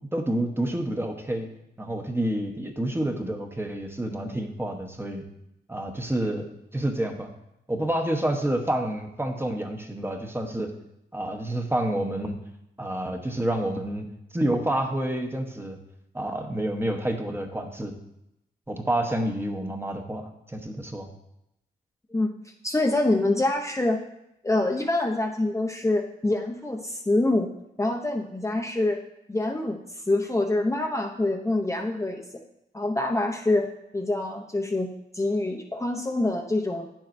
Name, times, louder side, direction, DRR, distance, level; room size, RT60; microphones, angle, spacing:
voice 1, 0.1-1.5 1.8-5.2 5.7-6.5 6.7-7.3 7.7-10.7 11.1-12.4 12.8-14.1 14.3-15.8 16.1-17.9 18.7-21.1, right 1 dB, 10° right, 4 dB, 1.0 m, -28 dB
voice 2, 22.1-24.0 24.4-27.5 27.8-29.0 29.3-32.2 32.7-33.7 33.9-36.9, left 2 dB, 15° left, 0 dB, 0.7 m, -26 dB
9.3 x 7.3 x 2.6 m, 0.84 s
cardioid pair, 85°, 19 cm